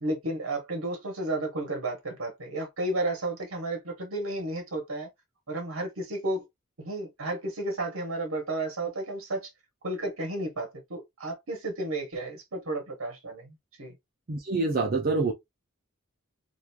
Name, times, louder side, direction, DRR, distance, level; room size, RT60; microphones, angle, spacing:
voice 1, 0.0-5.1 5.5-6.4 6.8-9.5 9.8-13.9, right 2 dB, 70° right, 0.9 m, -32 dB
voice 2, 14.3-15.3, right 3 dB, 40° right, 0.5 m, -26 dB
2.9 x 2.4 x 2.2 m
head